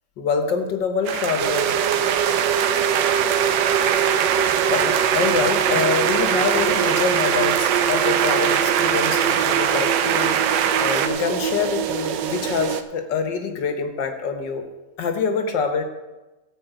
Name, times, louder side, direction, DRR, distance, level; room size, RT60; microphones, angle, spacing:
voice 1, 0.2-1.8 4.7-14.7 15.0-15.8, left 5 dB, 65° left, 6 dB, 1.8 m, -25 dB
sound 1, 1.1-11.1, right 9 dB, 85° right, 1.6 m, -22 dB
sound 2, 1.4-12.8, right 8 dB, 70° right, 1.3 m, -24 dB
14.0 x 5.2 x 8.1 m, 1.1 s
omnidirectional pair, 2.2 m